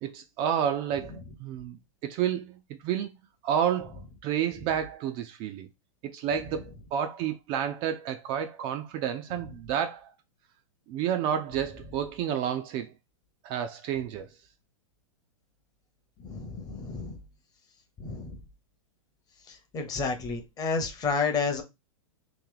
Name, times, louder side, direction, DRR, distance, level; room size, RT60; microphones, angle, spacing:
voice 1, 0.0-3.1 3.4-5.7 6.0-10.1 10.9-12.9 13.4-14.3, right 9 dB, 30° right, 0.4 m, -30 dB
voice 2, 16.2-17.2 18.0-18.4 19.5-21.6, left 4 dB, 20° left, 0.8 m, -31 dB
3.0 x 2.7 x 3.8 m
hypercardioid pair, 130°, 17 cm